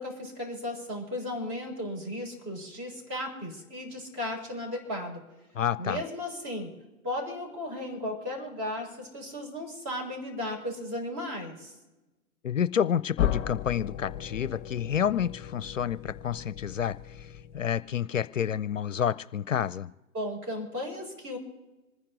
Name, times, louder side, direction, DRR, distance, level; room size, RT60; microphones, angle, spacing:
voice 1, 0.0-5.2 5.8-6.7 7.0-11.7 20.1-21.4, left 1 dB, 25° right, 1 dB, 4.6 m, -35 dB
voice 2, 5.5-6.0 12.4-19.9, left 9 dB, 65° left, 17 dB, 0.6 m, -29 dB
sound 1, 13.2-17.9, left 11 dB, 25° left, 1.1 m, -35 dB
27.0 x 10.0 x 3.8 m, 1.1 s
figure-of-eight pair, 125°, 42 cm